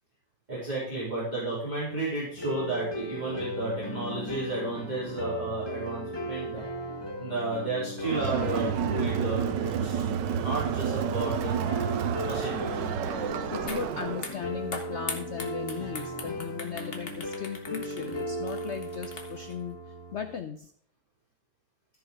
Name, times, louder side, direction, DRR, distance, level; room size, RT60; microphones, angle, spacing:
voice 1, 0.5-6.6 7.2-10.1 10.3-11.6 12.2-12.8, right 2 dB, 20° right, -8 dB, 3.5 m, -32 dB
sound 1, 2.4-20.4, equal, 15° left, 1.0 m, -37 dB
Crowd, 8.0-14.3, right 8 dB, 75° right, 1.4 m, -30 dB
voice 2, 13.5-20.7, left 7 dB, 65° left, 9 dB, 0.7 m, -37 dB
sound 2, 13.7-13.8 14.1-19.5, left 3 dB, 35° left, 1.5 m, -40 dB
14.0 x 5.9 x 4.7 m, 0.63 s
omnidirectional pair, 2.0 m